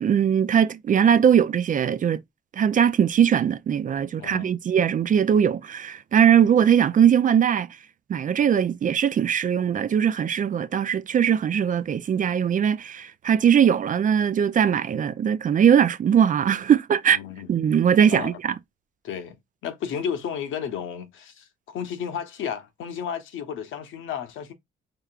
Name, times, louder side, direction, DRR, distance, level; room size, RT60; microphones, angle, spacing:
voice 1, 0.0-2.2 2.5-7.7 8.1-17.2 17.5-18.5, right 8 dB, 40° right, 0.4 m, -20 dB
voice 2, 4.2-4.6 17.1-17.5 18.1-18.4 19.0-24.5, left 8 dB, 80° left, 1.0 m, -33 dB
4.9 x 3.2 x 2.4 m
cardioid pair, 90°, 20 cm